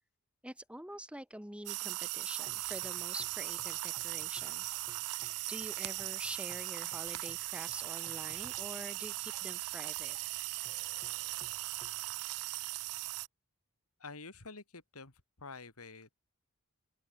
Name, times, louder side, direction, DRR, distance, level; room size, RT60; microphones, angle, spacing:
voice 1, 0.4-4.8 5.5-10.2, right 1 dB, 5° right, 2.7 m, -46 dB
sound 1, 1.7-13.3, right 20 dB, 85° right, 0.4 m, -39 dB
sound 2, 2.3-12.4, left 1 dB, 20° left, 2.7 m, -61 dB
voice 2, 14.0-15.1 15.4-16.2, left 4 dB, 85° left, 2.9 m, -48 dB
open air
head